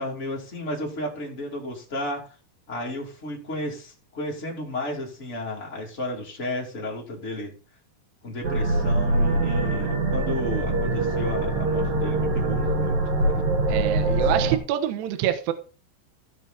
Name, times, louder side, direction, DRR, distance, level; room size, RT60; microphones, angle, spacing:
voice 1, 0.0-2.2 2.7-7.5 8.2-13.4 14.1-14.3, left 1 dB, 20° left, -2 dB, 2.2 m, -33 dB
sound 1, 8.4-14.6, right 2 dB, 50° right, 2.4 m, -23 dB
voice 2, 13.7-15.5, right 11 dB, 70° right, 7 dB, 2.9 m, -26 dB
15.5 x 5.5 x 4.3 m, 0.35 s
omnidirectional pair, 5.6 m